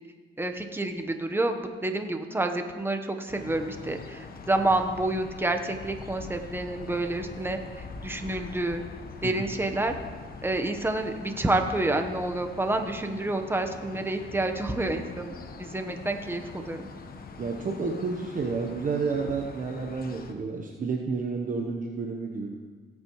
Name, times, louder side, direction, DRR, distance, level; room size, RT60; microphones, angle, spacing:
voice 1, 0.4-7.6 8.0-8.8 9.2-9.9 10.4-16.9, right 2 dB, 10° right, 6 dB, 1.0 m, -29 dB
sound 1, 3.3-20.3, left 4 dB, 50° left, 1.1 m, -43 dB
voice 2, 17.4-22.5, right 4 dB, 40° right, 2 dB, 1.0 m, -30 dB
17.0 x 8.8 x 3.1 m, 1.5 s
cardioid pair, 90°, 20 cm